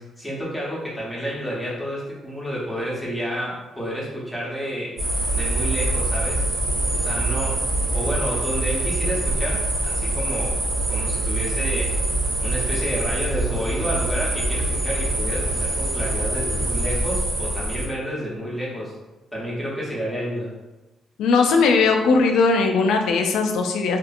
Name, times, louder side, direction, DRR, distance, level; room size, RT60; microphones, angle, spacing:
voice 1, 0.0-4.9 5.3-6.4 6.9-10.5 10.9-11.9 12.4-18.9 19.3-20.5, equal, 5° left, -7 dB, 0.8 m, -30 dB
sound 1, 5.0-17.9, right 1 dB, 50° right, 0.8 m, -24 dB
voice 2, 21.2-24.0, left 4 dB, 85° left, 3 dB, 0.4 m, -19 dB
2.7 x 2.4 x 2.5 m, 1.0 s
cardioid pair, 155°, 0 cm